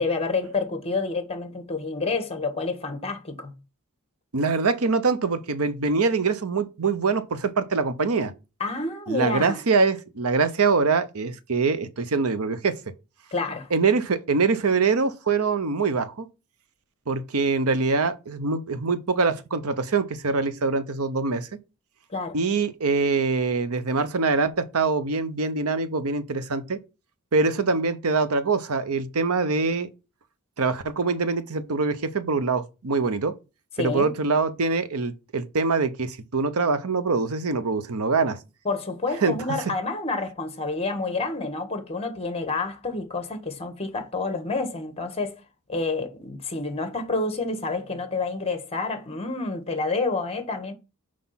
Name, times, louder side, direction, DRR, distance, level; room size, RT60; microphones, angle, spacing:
voice 1, 0.0-3.5 8.6-9.6 13.3-13.7 22.1-22.4 33.8-34.1 38.6-45.4 45.7-50.7, left 3 dB, 30° left, 1.4 m, -28 dB
voice 2, 4.3-8.3 9.1-12.8 13.7-16.3 17.1-21.5 22.3-26.8 27.3-29.9 30.6-33.3 33.8-38.4 39.2-39.3, right 4 dB, 80° right, 0.8 m, -24 dB
6.0 x 4.9 x 5.7 m
head